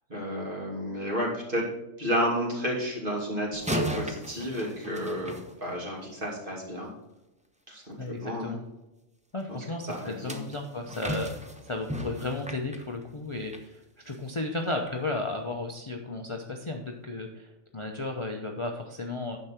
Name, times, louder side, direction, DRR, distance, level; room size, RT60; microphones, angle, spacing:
voice 1, 0.1-1.7 2.0-6.9 7.7-8.5 9.5-10.4, equal, 40° right, -3 dB, 2.9 m, -32 dB
sound 1, 3.5-6.1 9.9-13.7 14.1-14.3 14.9-15.0, equal, 5° right, 0.8 m, -35 dB
voice 2, 8.0-8.6 9.3-19.4, left 2 dB, 25° left, 2 dB, 0.7 m, -34 dB
10.0 x 6.7 x 4.4 m, 0.98 s
omnidirectional pair, 1.4 m